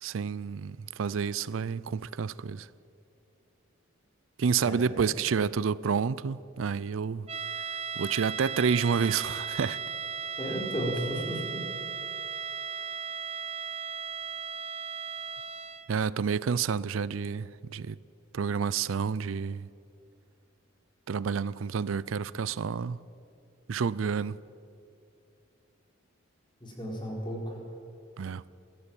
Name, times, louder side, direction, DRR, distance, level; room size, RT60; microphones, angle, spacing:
voice 1, 0.0-2.7 4.4-7.3 8.0-9.8 15.9-18.0 18.3-19.7 21.1-23.0 23.7-24.4 28.2-28.4, right 6 dB, 85° right, 0.4 m, -29 dB
voice 2, 4.6-5.1 10.4-11.6 26.6-27.5, equal, 25° left, 4.5 m, -34 dB
sound 1, 7.3-16.0, right 6 dB, 30° right, 0.6 m, -36 dB
20.5 x 14.0 x 9.0 m
head